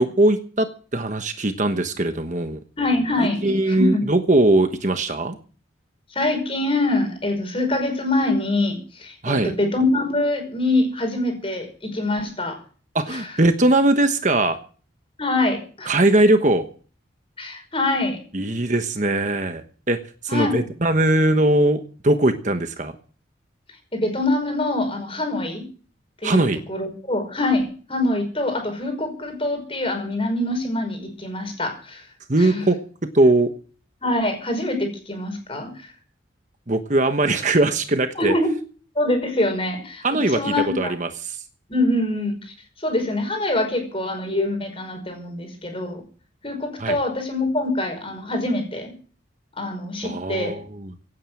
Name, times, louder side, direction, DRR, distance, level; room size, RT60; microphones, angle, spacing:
voice 1, 0.0-2.6 3.4-5.4 9.2-9.5 12.9-14.6 15.9-16.7 18.3-20.0 20.3-22.9 26.2-26.6 32.3-32.8 33.1-33.5 36.7-38.4 40.0-41.3 46.8-47.0 50.0-50.9, right 2 dB, 40° right, 7 dB, 1.2 m, -20 dB
voice 2, 2.8-3.4 3.7-4.0 6.1-12.6 13.1-13.4 15.2-16.0 17.4-18.2 20.3-20.6 23.9-25.6 26.2-32.1 32.4-32.7 34.0-35.9 38.2-38.5 39.0-40.9 41.7-46.0 46.4-48.9 49.6-50.5, left 2 dB, 30° left, 5 dB, 5.3 m, -24 dB
17.0 x 9.3 x 7.7 m, 0.41 s
head